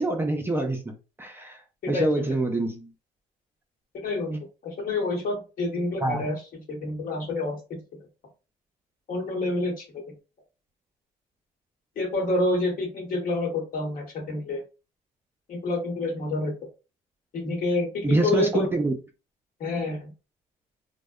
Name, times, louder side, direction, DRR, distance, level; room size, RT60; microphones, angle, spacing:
voice 1, 0.0-1.6 1.9-2.9 6.0-6.2 18.0-18.9, right 2 dB, 15° right, 0.4 m, -26 dB
voice 2, 1.8-2.2 4.0-6.3 6.7-7.8 9.1-10.0 12.0-14.6 15.5-16.5 17.3-18.7 19.6-20.1, left 2 dB, 55° left, 1.0 m, -28 dB
2.7 x 2.1 x 2.3 m
cardioid pair, 110°, 17 cm